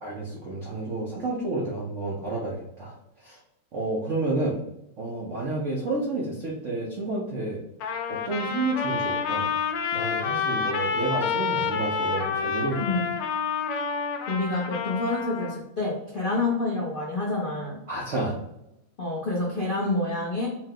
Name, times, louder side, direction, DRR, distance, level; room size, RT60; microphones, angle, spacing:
voice 1, 0.0-2.9 3.2-3.4 3.7-4.6 5.0-7.6 8.1-9.5 9.9-13.0 17.9-18.4, right 2 dB, 75° right, -3 dB, 0.6 m, -30 dB
Trumpet, 7.8-15.6, left 6 dB, 85° left, 1.5 m, -28 dB
voice 2, 14.3-17.8 19.0-20.5, left 2 dB, 65° left, -7 dB, 0.5 m, -28 dB
4.6 x 2.2 x 3.7 m, 0.85 s
omnidirectional pair, 2.3 m